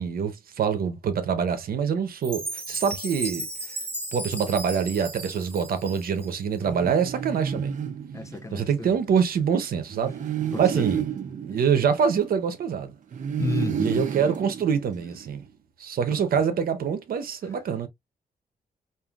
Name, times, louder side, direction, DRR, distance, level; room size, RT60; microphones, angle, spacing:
voice 1, 0.0-3.5 4.1-7.8 8.5-10.2 10.6-11.1 11.4-12.9 13.8-15.4 15.8-17.9, right 7 dB, 75° right, 0.9 m, -25 dB
Chime, 2.2-6.4, right 2 dB, 15° right, 1.5 m, -35 dB
sound 1, 6.6-8.8 9.9-12.6 13.1-15.4, right 8 dB, 55° right, 0.7 m, -31 dB
voice 2, 8.1-9.0 10.5-10.9 13.4-14.1, left 3 dB, 20° left, 0.4 m, -31 dB
5.5 x 2.7 x 2.4 m
wide cardioid pair, 165°, 15 cm